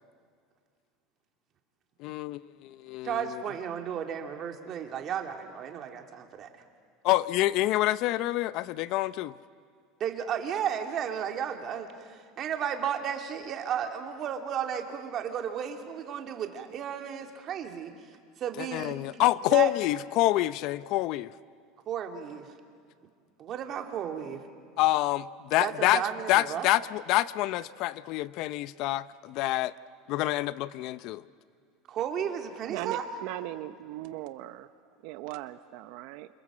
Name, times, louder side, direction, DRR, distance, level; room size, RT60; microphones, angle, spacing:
voice 1, 2.0-3.4 7.0-9.3 18.6-21.3 24.8-26.0 26.3-29.7 30.1-31.2, left 16 dB, 55° left, 17 dB, 0.6 m, -27 dB
voice 2, 3.0-6.5 10.0-17.9 18.4-19.0 19.5-19.7 21.9-22.5 23.4-24.4 25.6-26.7 31.9-33.1, right 8 dB, 40° right, 4 dB, 2.6 m, -33 dB
voice 3, 32.7-34.7 35.0-36.3, right 16 dB, 65° right, 11 dB, 0.8 m, -38 dB
28.0 x 26.0 x 7.5 m, 2.2 s
supercardioid pair, 135°, 0 cm